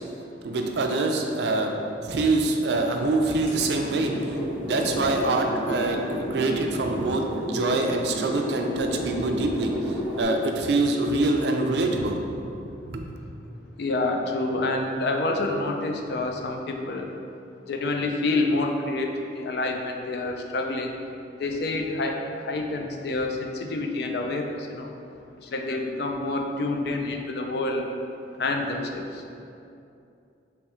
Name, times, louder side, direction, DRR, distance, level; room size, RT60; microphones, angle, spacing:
voice 1, 0.4-6.0 6.3-7.2 7.5-12.4 12.9-13.0, right 2 dB, 65° right, 3 dB, 0.4 m, -25 dB
sound 1, 3.5-10.2, equal, 25° left, 1.3 m, -32 dB
voice 2, 13.8-17.1 17.7-20.9 21.4-24.9 25.4-27.9 28.4-29.2, left 2 dB, 60° left, 3 dB, 0.4 m, -28 dB
3.5 x 3.1 x 4.2 m, 2.7 s
head